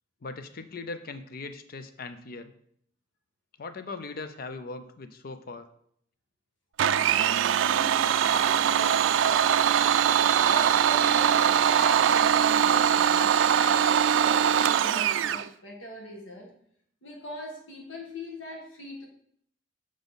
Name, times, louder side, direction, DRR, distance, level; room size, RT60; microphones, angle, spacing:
voice 1, 0.2-2.5 3.6-5.7, left 3 dB, 50° left, 9 dB, 0.6 m, -39 dB
Domestic sounds home sounds, 6.8-15.5, right 9 dB, 75° right, 0.3 m, -22 dB
voice 2, 7.5-9.7 10.3-16.5 17.0-19.1, left 1 dB, 85° left, 0 dB, 1.5 m, -41 dB
6.9 x 5.0 x 4.0 m, 0.67 s
head